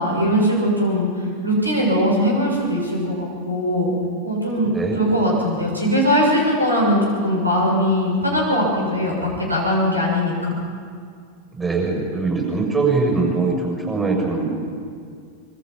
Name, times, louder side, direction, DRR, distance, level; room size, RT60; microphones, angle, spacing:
voice 1, 0.0-3.9 4.2-10.5, equal, 85° right, -2 dB, 7.1 m, -20 dB
voice 2, 4.6-5.0 11.5-14.5, right 3 dB, 15° right, 0 dB, 6.9 m, -22 dB
25.5 x 23.5 x 5.5 m, 2.2 s
figure-of-eight pair, 90°, 0 cm